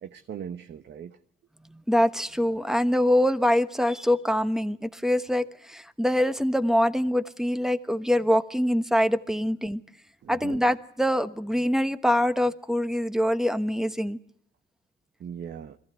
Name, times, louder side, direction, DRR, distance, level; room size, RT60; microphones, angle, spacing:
voice 1, 0.0-1.2 10.2-10.6 15.2-15.8, right 8 dB, 60° right, 8 dB, 1.1 m, -39 dB
voice 2, 1.7-9.8 10.3-14.2, equal, ahead, 11 dB, 1.2 m, -24 dB
22.0 x 15.0 x 9.4 m, 0.68 s
cardioid pair, 90°, 20 cm